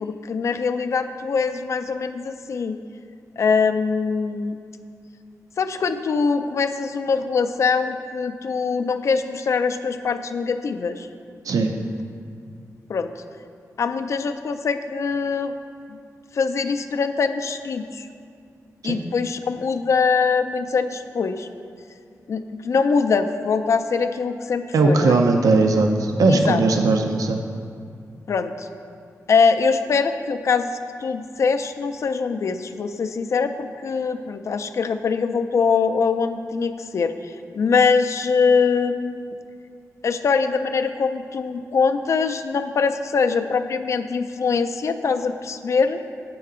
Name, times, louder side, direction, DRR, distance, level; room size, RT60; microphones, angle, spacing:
voice 1, 0.0-2.8 3.4-4.6 5.6-11.1 12.9-13.1 13.8-15.6 15.9-16.0 16.3-18.1 18.8-21.5 22.3-25.2 26.3-26.6 28.3-28.7 29.3-30.7 31.0-39.3 40.0-46.0, left 5 dB, 55° left, 8 dB, 0.4 m, -23 dB
voice 2, 24.7-27.4, right 3 dB, 75° right, 4 dB, 0.5 m, -18 dB
8.5 x 5.6 x 3.6 m, 2.3 s
wide cardioid pair, 120°, 6 cm